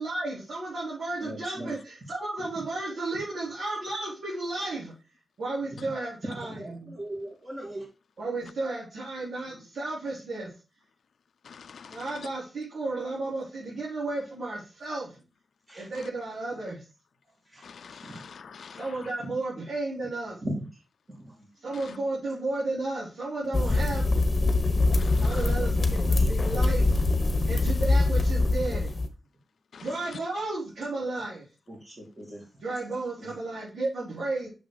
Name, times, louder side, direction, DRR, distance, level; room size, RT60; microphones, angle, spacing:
voice 1, 0.0-4.9 5.4-7.0 8.2-10.5 11.9-15.2 15.7-16.8 18.8-20.4 21.6-24.2 25.2-26.9 27.5-28.9 29.8-31.4 32.6-34.5, right 2 dB, 70° right, 4.2 m, -33 dB
voice 2, 1.2-1.7 5.7-5.8 6.3-7.9 15.7-15.9 17.5-17.6 18.0-18.2 20.4-20.7 25.1-25.7 26.0-26.3 31.7-32.4 33.2-33.3, right 1 dB, 20° right, 2.4 m, -38 dB
voice 3, 11.5-12.0 17.6-18.8 24.9-25.3 29.7-29.8, left 6 dB, 70° left, 0.5 m, -46 dB
sound 1, 23.5-29.1, left 2 dB, 35° left, 1.1 m, -23 dB
6.7 x 6.0 x 4.9 m
wide cardioid pair, 165°, 0 cm